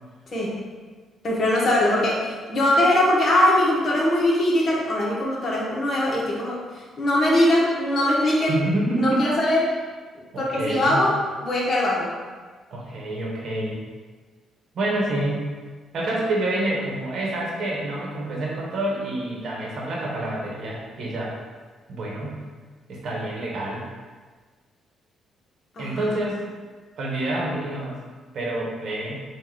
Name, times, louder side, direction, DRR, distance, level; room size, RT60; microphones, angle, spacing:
voice 1, 0.3-0.6 1.2-8.6 9.0-9.6 10.4-11.1 11.4-12.1 25.8-26.1, left 1 dB, 45° left, -5 dB, 1.3 m, -21 dB
voice 2, 8.5-9.3 10.3-11.1 12.7-13.8 14.7-15.5 15.9-21.3 21.9-22.4 22.9-23.8 25.8-26.4 27.0-28.0 28.3-29.2, right 1 dB, 65° right, -3 dB, 1.1 m, -27 dB
4.0 x 2.5 x 4.7 m, 1.4 s
cardioid pair, 90°, 0 cm